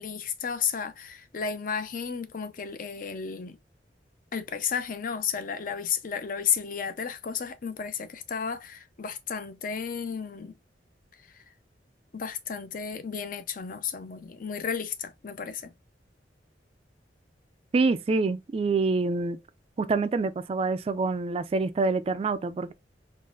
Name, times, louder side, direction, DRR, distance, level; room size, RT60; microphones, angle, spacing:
voice 1, 0.0-3.6 4.3-10.6 11.2-11.4 12.1-15.7, left 7 dB, 50° left, 0.5 m, -33 dB
voice 2, 17.7-19.4 19.8-22.7, right 3 dB, 35° right, 0.3 m, -26 dB
3.8 x 2.4 x 2.3 m
head